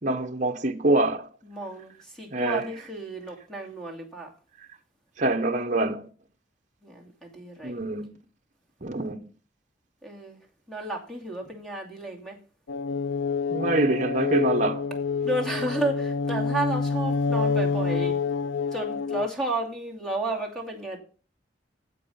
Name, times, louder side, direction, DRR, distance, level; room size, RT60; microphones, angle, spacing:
voice 1, 0.0-1.3 2.3-2.7 5.2-6.1 7.6-8.1 8.8-9.2 13.5-14.9, right 2 dB, 40° right, 0.9 m, -25 dB
voice 2, 1.4-4.3 6.8-7.8 10.0-10.4 10.7-12.4 15.2-18.3 18.7-21.0, right 2 dB, 5° left, 2.5 m, -32 dB
sound 1, 12.7-19.3, left 5 dB, 80° left, 0.4 m, -27 dB
9.6 x 7.7 x 5.6 m
head